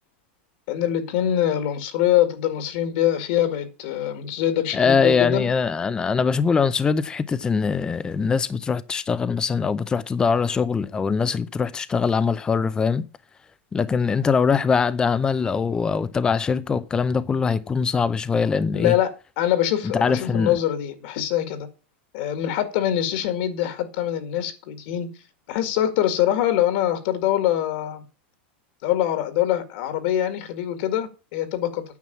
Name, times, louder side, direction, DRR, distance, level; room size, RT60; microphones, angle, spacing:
voice 1, 0.7-5.5 18.7-21.7 22.1-25.1 25.5-28.0 28.8-31.8, left 11 dB, 55° left, 2.0 m, -24 dB
voice 2, 4.7-13.0 13.7-19.0 19.8-20.6, left 5 dB, 10° left, 0.6 m, -22 dB
9.4 x 6.1 x 7.2 m
supercardioid pair, 155°, 6 cm